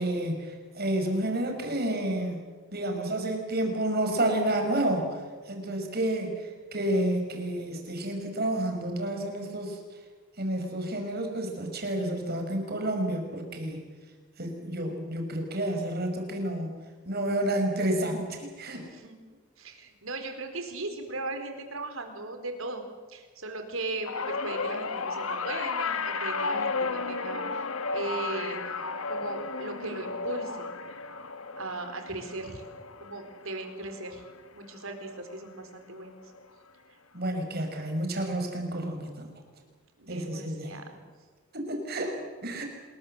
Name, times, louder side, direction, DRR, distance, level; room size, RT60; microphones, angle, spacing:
voice 1, 0.0-2.4 2.7-5.1 5.5-6.4 6.7-9.8 10.4-13.9 14.4-16.7 17.1-18.8 37.1-39.3 40.1-40.8 41.5-42.6, right 1 dB, 50° right, 3 dB, 5.5 m, -30 dB
voice 2, 19.6-22.8 23.1-27.6 27.9-28.6 29.1-30.7 31.5-32.6 33.0-34.2 34.5-36.2 40.0-41.0, right 2 dB, 80° right, 6 dB, 4.4 m, -38 dB
sound 1, 24.1-34.5 34.8-35.3 36.4-36.5, left 4 dB, 80° left, 1.4 m, -33 dB
27.0 x 21.0 x 7.8 m, 1.4 s
head